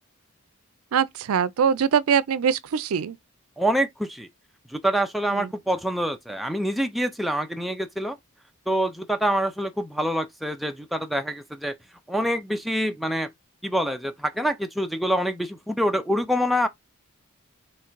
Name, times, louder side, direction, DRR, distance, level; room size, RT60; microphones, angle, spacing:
voice 1, 0.9-3.2 5.4-5.5, right 7 dB, 80° right, 0.4 m, -23 dB
voice 2, 3.6-4.3 4.7-8.2 8.7-11.7 12.1-13.3 13.6-16.7, equal, ahead, 0.4 m, -26 dB
3.7 x 3.2 x 4.4 m
head